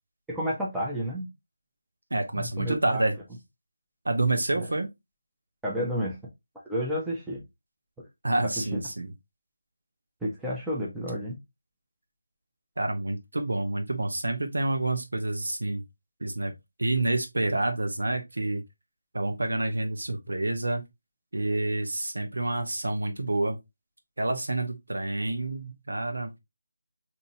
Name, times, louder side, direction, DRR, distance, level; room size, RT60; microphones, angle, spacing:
voice 1, 0.3-1.3 2.3-3.0 4.5-4.7 5.6-6.2 6.7-7.4 8.7-8.8 10.2-11.4, equal, 5° right, 0.8 m, -31 dB
voice 2, 2.1-3.2 4.0-4.9 8.2-9.1 12.8-15.8 16.2-16.5 16.8-18.6 19.1-20.8 21.3-23.6 24.2-26.3, right 2 dB, 75° right, 0.9 m, -28 dB
3.9 x 2.9 x 2.7 m
figure-of-eight pair, 165°, 0 cm